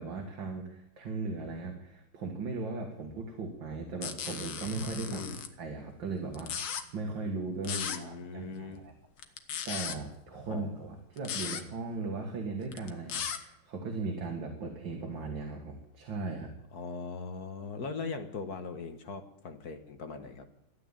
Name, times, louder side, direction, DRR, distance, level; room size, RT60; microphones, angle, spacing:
voice 1, 0.0-5.2 5.6-8.9 9.7-16.5, right 3 dB, 65° right, 2 dB, 2.5 m, -38 dB
sound 1, 4.0-5.5 6.3-6.8 7.6-8.0 9.2-10.0 11.2-11.6 12.7-13.4, left 8 dB, 90° left, 2.0 m, -36 dB
sound 2, 4.6-7.1, right 1 dB, 15° right, 4.4 m, -45 dB
voice 2, 5.1-5.4 7.6-8.8 10.5-10.7 16.7-20.5, left 4 dB, 50° left, 7 dB, 1.7 m, -40 dB
14.0 x 9.9 x 8.8 m, 0.84 s
omnidirectional pair, 2.2 m